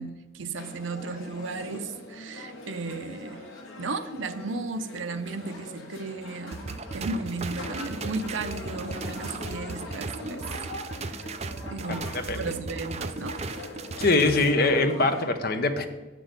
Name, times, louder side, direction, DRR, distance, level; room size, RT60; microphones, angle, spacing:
voice 1, 0.0-3.4 3.8-6.6 6.9-10.5 11.0-11.3 11.7-13.4, right 3 dB, 75° right, 9 dB, 0.6 m, -35 dB
sound 1, 0.6-15.2, left 2 dB, 80° left, 1.4 m, -42 dB
sound 2, 6.5-14.5, right 4 dB, 30° right, 0.4 m, -36 dB
voice 2, 11.9-12.4 14.0-15.9, left 2 dB, 50° left, 7 dB, 0.7 m, -23 dB
7.9 x 6.1 x 5.1 m, 1.2 s
head